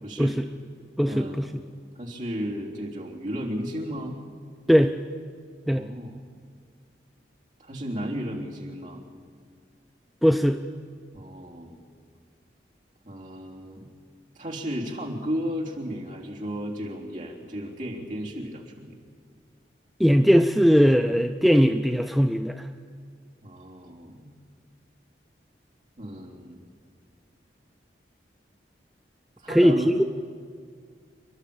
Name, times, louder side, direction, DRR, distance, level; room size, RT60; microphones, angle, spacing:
voice 1, 0.0-0.3 1.0-1.4 2.0-4.2 5.6-6.2 7.6-9.0 11.1-11.8 13.0-13.9 14.3-19.0 23.4-24.3 26.0-26.6 29.4-29.9, equal, 45° right, -3 dB, 3.4 m, -34 dB
voice 2, 1.0-1.5 4.7-5.0 5.7-5.9 10.2-10.6 20.0-22.7 29.5-30.0, equal, ahead, 6 dB, 0.4 m, -20 dB
28.5 x 11.5 x 8.7 m, 2.1 s
head